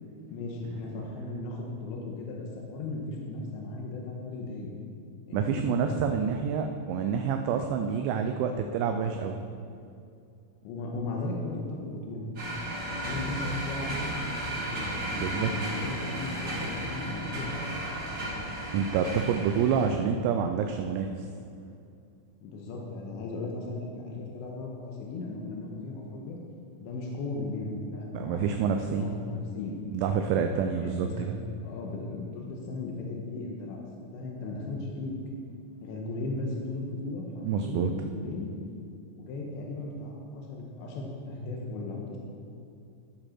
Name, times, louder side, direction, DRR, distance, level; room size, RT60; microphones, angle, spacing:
voice 1, 0.3-4.7 5.3-6.1 10.6-12.2 12.7-12.8 13.0-17.5 22.4-26.4 26.8-28.4 28.7-29.8 30.1-30.4 30.8-31.3 31.6-33.8 34.1-35.1 35.8-38.5 39.1-42.2, left 2 dB, 80° left, -1 dB, 3.0 m, -36 dB
voice 2, 5.3-9.4 15.1-15.5 18.7-21.2 28.1-29.0 29.9-31.4 37.4-37.9, right 7 dB, 85° right, 5 dB, 2.6 m, -28 dB
sound 1, 12.3-19.9, right 1 dB, 30° right, 2.5 m, -34 dB
13.0 x 6.6 x 4.4 m, 2.5 s
omnidirectional pair, 5.6 m